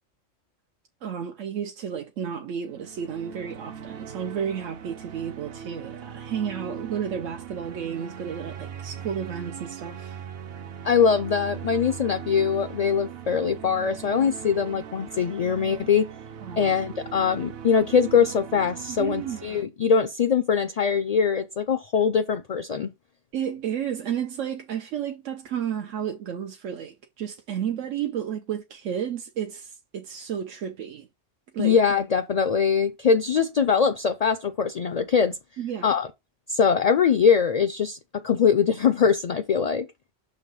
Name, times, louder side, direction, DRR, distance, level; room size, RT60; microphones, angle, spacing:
voice 1, 1.0-10.2 16.4-16.8 18.9-19.4 23.3-31.1 31.5-31.8 35.6-36.0, right 8 dB, 85° right, 1.1 m, -32 dB
sound 1, 2.6-19.6, right 8 dB, 60° right, 0.8 m, -40 dB
voice 2, 10.8-16.1 16.6-22.9 31.6-35.4 35.8-36.1 36.5-38.0 38.2-39.9, left 6 dB, 50° left, 0.4 m, -22 dB
6.5 x 3.3 x 5.4 m
omnidirectional pair, 1.3 m